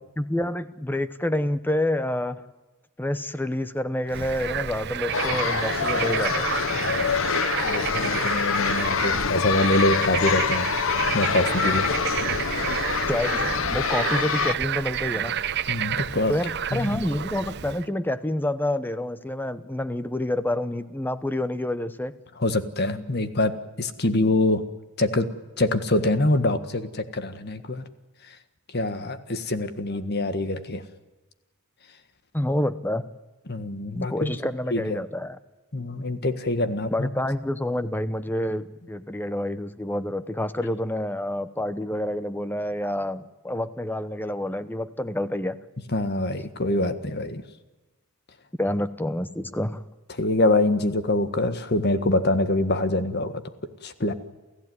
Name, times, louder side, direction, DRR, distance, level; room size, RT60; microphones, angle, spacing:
voice 1, 0.2-2.4 3.0-6.9 13.1-15.3 16.3-22.1 32.3-33.1 33.9-35.4 36.9-45.6 48.6-49.8, left 1 dB, 10° left, 13 dB, 0.9 m, -28 dB
Bird / Frog, 4.1-17.9, right 8 dB, 55° right, 0.7 m, -30 dB
sound 1, 5.1-14.5, left 6 dB, 65° left, 0.8 m, -26 dB
voice 2, 7.6-10.7 11.1-11.9 15.7-16.3 16.7-17.0 22.4-24.6 25.0-25.3 25.6-27.8 28.7-30.8 33.5-34.3 34.7-35.0 35.7-37.1 45.9-47.4 50.2-53.4 53.8-54.1, left 2 dB, 50° left, 10 dB, 1.6 m, -25 dB
29.0 x 15.0 x 9.6 m, 1.2 s
head